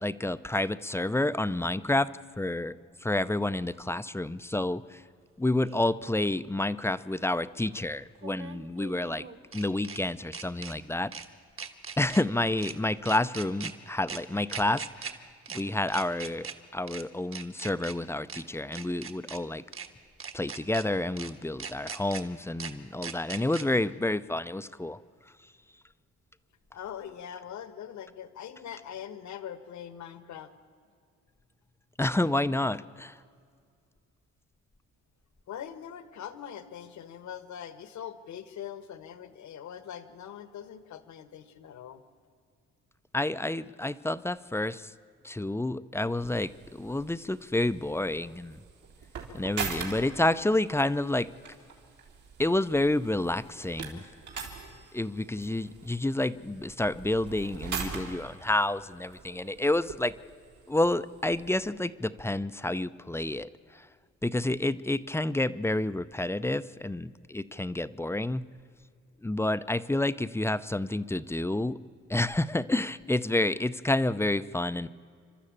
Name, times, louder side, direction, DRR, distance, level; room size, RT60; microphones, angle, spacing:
voice 1, 0.0-2.1 2.4-5.0 5.4-9.2 9.5-11.1 12.0-15.2 15.5-19.6 20.3-25.0 32.0-33.2 43.1-44.9 45.2-48.6 49.3-51.3 52.4-54.0 54.9-60.1 60.7-63.9 64.2-68.4 69.2-71.8 72.1-74.9, left 1 dB, 10° left, 13 dB, 0.5 m, -29 dB
sound 1, 5.7-5.8 8.2-10.0 10.3-10.7 11.1-11.3 11.6-12.2 12.6-12.7 13.1-13.7 14.1-14.2 14.5-15.1 15.5-15.6 15.9-16.5 16.9-17.0 17.3-17.9 18.3-18.4 18.7-19.4 19.7-19.9 20.2-20.8 21.2-21.3 21.6-22.2 22.6-22.7 23.0-23.6, right 6 dB, 45° right, 1.6 m, -39 dB
voice 2, 26.7-30.5 35.5-42.0, left 9 dB, 70° left, 12 dB, 1.4 m, -42 dB
sound 2, 46.2-61.7, right 6 dB, 75° right, 3.7 m, -43 dB
29.0 x 12.5 x 8.7 m, 2.2 s
cardioid pair, 90°, 30 cm